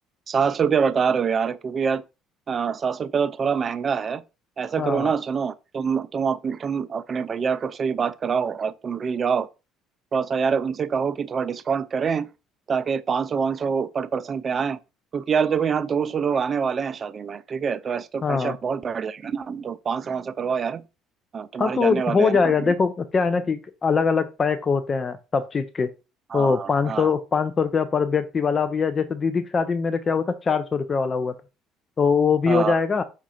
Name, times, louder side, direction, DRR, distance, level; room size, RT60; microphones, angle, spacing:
voice 1, 0.3-2.0 2.5-4.2 4.6-9.5 10.1-12.3 12.7-14.8 15.1-20.8 21.3-22.7 26.3-27.1 32.5-32.8, right 6 dB, 40° right, 0.3 m, -25 dB
voice 2, 4.8-5.1 18.2-18.6 21.6-25.9 26.3-31.3 32.0-33.0, left 5 dB, 35° left, 0.5 m, -22 dB
5.0 x 2.3 x 4.2 m
supercardioid pair, 90°, 0 cm